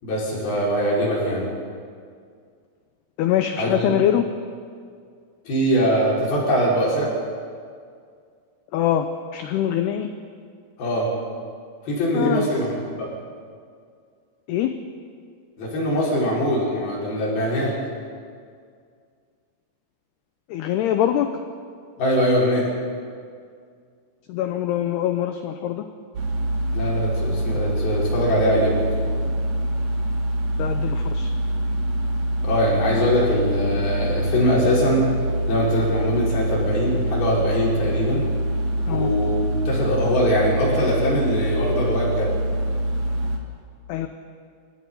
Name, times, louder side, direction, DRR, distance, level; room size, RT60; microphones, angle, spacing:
voice 1, 0.0-1.5 3.6-3.9 5.4-7.1 10.8-11.1 11.8-13.1 15.6-17.8 22.0-22.7 26.7-28.8 32.4-35.1 35.5-38.2 38.9-42.4, equal, 50° left, -5 dB, 6.6 m, -22 dB
voice 2, 3.2-4.3 8.7-9.1 9.3-10.1 12.1-12.5 14.5-14.7 20.5-21.3 24.3-25.9 30.6-31.3 38.9-39.1 43.9-44.1, left 11 dB, 85° left, 8 dB, 2.3 m, -23 dB
sound 1, 26.1-43.4, right 1 dB, 50° right, 2.1 m, -25 dB
30.0 x 16.0 x 5.6 m, 2.2 s
omnidirectional pair, 5.7 m